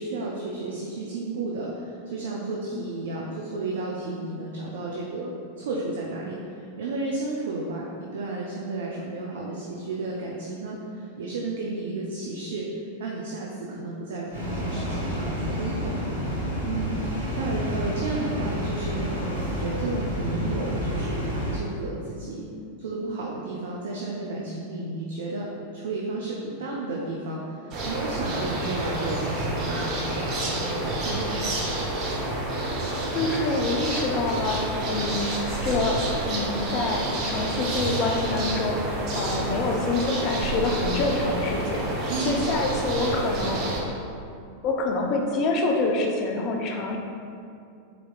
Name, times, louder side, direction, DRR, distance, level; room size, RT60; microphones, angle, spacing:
voice 1, 0.0-12.7 13.0-19.0 19.4-22.5 22.8-31.4 42.1-42.4, right 2 dB, 60° right, -3 dB, 0.4 m, -33 dB
sound 1, 14.3-21.6, equal, 80° right, 1.1 m, -29 dB
sound 2, 27.7-43.8, right 2 dB, 40° right, 0.8 m, -29 dB
voice 2, 33.1-36.0 36.3-43.6 44.6-47.0, left 3 dB, 40° left, 1 dB, 0.5 m, -27 dB
4.1 x 4.1 x 2.4 m, 2.5 s
figure-of-eight pair, 90°, 0 cm